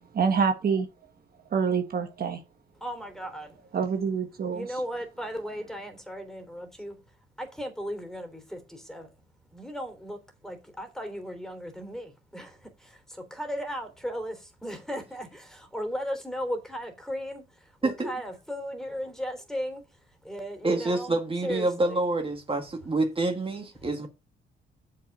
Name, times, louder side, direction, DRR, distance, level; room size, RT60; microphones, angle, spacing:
voice 1, 0.1-0.9 1.5-2.4 3.7-4.8, right 6 dB, 50° right, 1.4 m, -26 dB
voice 2, 2.8-3.6 4.5-7.0 7.4-9.1 9.5-19.8 20.2-21.2 21.4-22.0 23.8-23.9, equal, ahead, 3.3 m, -36 dB
voice 3, 20.6-24.1, right 2 dB, 25° right, 2.0 m, -27 dB
7.3 x 5.6 x 6.7 m
cardioid pair, 90°, 20 cm